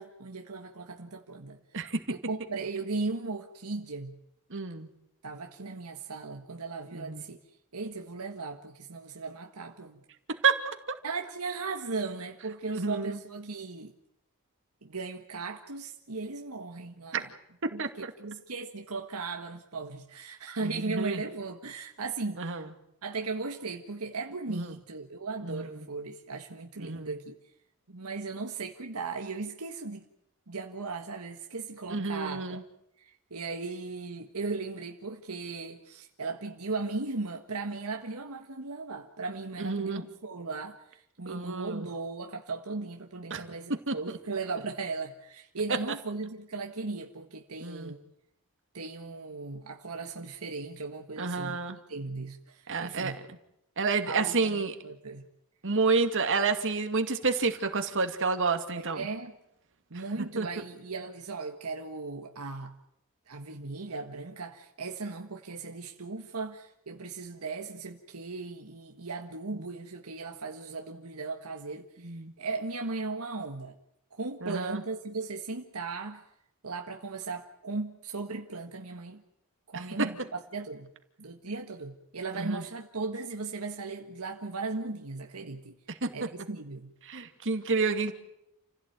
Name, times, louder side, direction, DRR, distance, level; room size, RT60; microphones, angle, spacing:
voice 1, 0.0-1.6 2.1-4.2 5.2-7.4 7.7-10.0 11.0-13.9 14.8-17.3 17.7-22.7 23.0-27.3 27.9-30.0 30.5-32.6 33.0-48.0 48.7-51.6 51.9-53.2 54.1-55.3 58.7-59.3 59.9-62.8 63.3-73.7 74.1-76.2 76.6-79.2 79.7-80.9 81.2-85.7 86.1-86.9, right 3 dB, 80° right, 1.7 m, -37 dB
voice 2, 4.5-4.9 6.9-7.2 10.4-10.6 12.7-13.2 17.8-18.1 20.6-21.2 22.4-22.6 24.5-24.7 25.4-25.7 26.8-27.1 31.9-32.6 39.6-40.0 41.3-41.9 43.3-43.4 43.9-44.0 47.6-47.9 51.2-51.8 52.7-53.1 53.8-54.7 55.6-59.1 60.4-60.5 72.0-72.3 74.4-74.8 82.4-82.6 86.0-86.1 87.1-88.1, right 4 dB, 60° right, 2.5 m, -29 dB
29.5 x 16.5 x 9.3 m
head